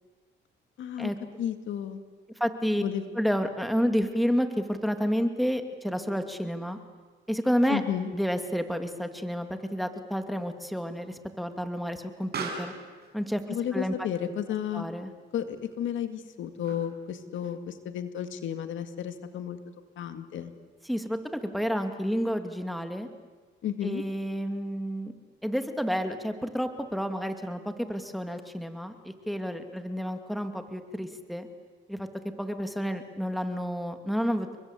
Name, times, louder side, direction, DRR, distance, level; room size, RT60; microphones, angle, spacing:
voice 1, 0.8-1.1 1.4-2.0 2.8-3.1 7.7-8.1 13.5-14.9 15.3-19.6 20.0-20.5 23.6-24.0, left 9 dB, 75° left, 9 dB, 2.1 m, -32 dB
voice 2, 2.4-2.8 3.2-6.8 7.3-7.8 8.1-12.7 13.1-13.9 14.7-15.1 20.9-23.1 23.8-25.1 25.4-31.5 31.9-32.1 32.4-34.6, equal, ahead, 7 dB, 2.6 m, -30 dB
Explosion, 8.1-17.1, right 4 dB, 55° right, 6.2 m, -45 dB
29.5 x 23.0 x 8.4 m, 1.5 s
cardioid pair, 90°, 20 cm